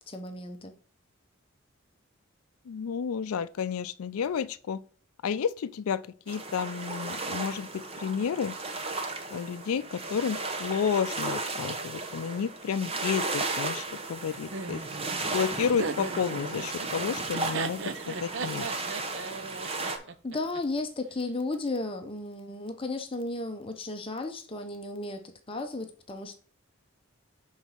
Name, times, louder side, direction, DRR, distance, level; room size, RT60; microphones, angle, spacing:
voice 1, 0.1-0.7 19.9-26.3, left 2 dB, 25° left, 0.7 m, -34 dB
voice 2, 2.7-4.8 5.2-8.6 9.3-13.8 14.1-14.8 15.3-18.7, left 7 dB, 90° left, 0.4 m, -31 dB
sound 1, 6.3-20.0, right 3 dB, 25° right, 0.8 m, -35 dB
Laughter, 14.5-20.6, right 4 dB, 60° right, 0.6 m, -37 dB
6.2 x 4.0 x 5.6 m
head